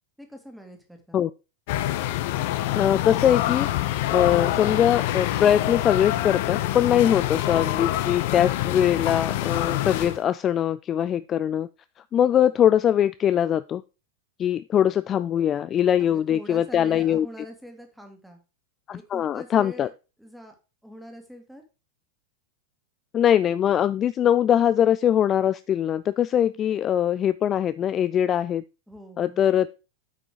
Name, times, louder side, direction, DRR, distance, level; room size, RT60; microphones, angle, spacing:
voice 1, 0.2-1.2 16.0-18.4 18.9-19.9 20.2-20.5 20.8-21.6 28.9-29.4, equal, ahead, 4 dB, 2.1 m, -43 dB
sound 1, 1.7-10.2, left 14 dB, 50° left, 0.7 m, -26 dB
voice 2, 2.7-3.7 4.1-11.7 12.1-13.8 14.4-17.3 18.9-19.9 23.1-28.6 29.2-29.7, left 10 dB, 25° left, 15 dB, 0.3 m, -22 dB
8.4 x 6.0 x 4.8 m, 0.31 s
figure-of-eight pair, 90°, 0 cm